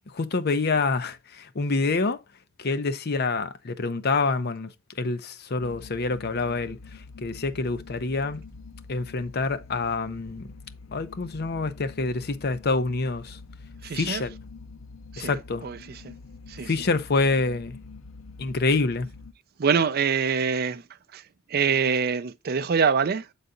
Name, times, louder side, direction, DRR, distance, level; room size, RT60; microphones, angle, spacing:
voice 1, 0.1-2.2 2.6-4.7 5.0-6.8 7.2-8.4 8.9-10.5 10.9-13.4 13.9-14.3 15.2-15.7 16.6-17.8 18.4-19.1, left 3 dB, 50° left, 0.7 m, -26 dB
sound 1, 5.6-19.3, left 4 dB, 90° left, 0.5 m, -45 dB
voice 2, 13.8-14.2 15.1-16.1 16.5-16.7 19.6-20.8 21.1-21.2 21.5-23.3, right 6 dB, 50° right, 0.4 m, -25 dB
8.0 x 4.0 x 3.8 m
head